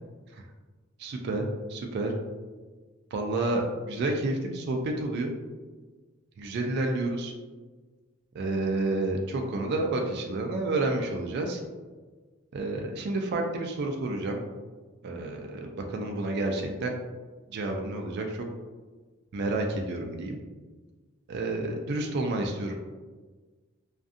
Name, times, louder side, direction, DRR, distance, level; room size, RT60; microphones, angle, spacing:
voice 1, 1.0-2.2 3.1-5.3 6.4-7.3 8.3-11.6 12.5-14.4 15.0-16.9 17.5-18.5 19.3-20.4 21.3-22.7, right 2 dB, 55° right, 2 dB, 0.3 m, -30 dB
2.5 x 2.4 x 2.5 m, 1.3 s
head